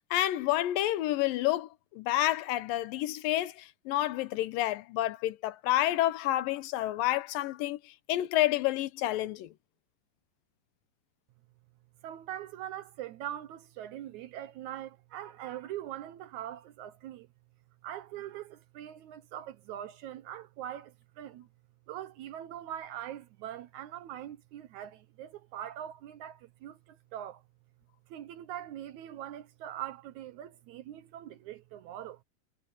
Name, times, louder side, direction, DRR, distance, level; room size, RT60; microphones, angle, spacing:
voice 1, 0.1-9.5, left 15 dB, 85° left, 2.6 m, -29 dB
voice 2, 12.0-17.3 17.8-21.5 21.9-27.4 28.1-32.2, right 11 dB, 75° right, 1.9 m, -42 dB
omnidirectional pair, 4.0 m